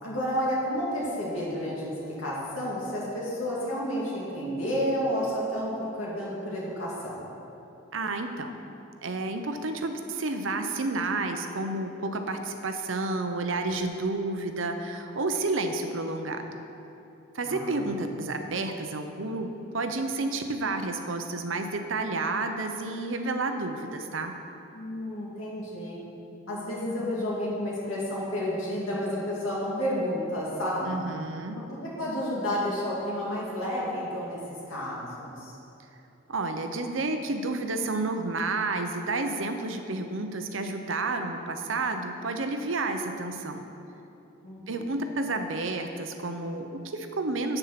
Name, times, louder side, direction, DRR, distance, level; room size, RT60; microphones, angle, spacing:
voice 1, 0.0-7.2 17.4-17.9 24.7-26.0 26.5-31.1 31.8-34.4 34.7-35.5 44.4-44.9, equal, 90° left, -6 dB, 2.2 m, -31 dB
voice 2, 7.9-8.5 9.0-16.6 17.3-24.4 30.8-31.6 36.3-43.6 44.7-47.6, right 3 dB, 75° right, 6 dB, 0.8 m, -30 dB
8.1 x 7.2 x 5.9 m, 2.9 s
head